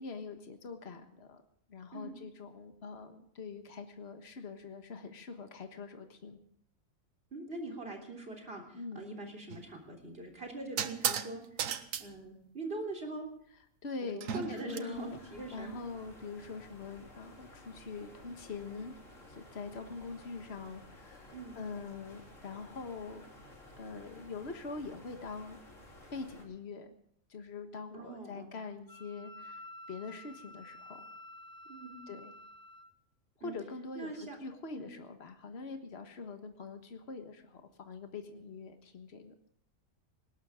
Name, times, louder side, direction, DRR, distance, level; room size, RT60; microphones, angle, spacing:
voice 1, 0.0-1.4 1.7-6.4 8.7-9.0 13.8-15.2 15.5-18.9 19.3-23.3 23.8-25.6 26.1-26.9 27.3-31.0 32.1-32.3 33.4-39.3, left 4 dB, 50° left, 6 dB, 1.7 m, -44 dB
voice 2, 7.3-11.4 12.0-13.3 14.1-15.7 21.3-21.6 27.9-28.5 31.7-32.0 33.4-33.5 34.0-34.4 34.8-34.9, right 2 dB, 45° right, 1 dB, 3.8 m, -42 dB
sound 1, 9.5-9.7 10.8-11.3 11.6-12.0 14.2-14.8, right 8 dB, 75° right, 1.3 m, -34 dB
sound 2, 14.9-26.4, left 1 dB, 70° left, 4.1 m, -55 dB
Wind instrument woodwind instrument, 28.9-32.9, left 1 dB, 20° left, 0.8 m, -51 dB
19.5 x 18.0 x 3.7 m, 0.68 s
omnidirectional pair, 1.4 m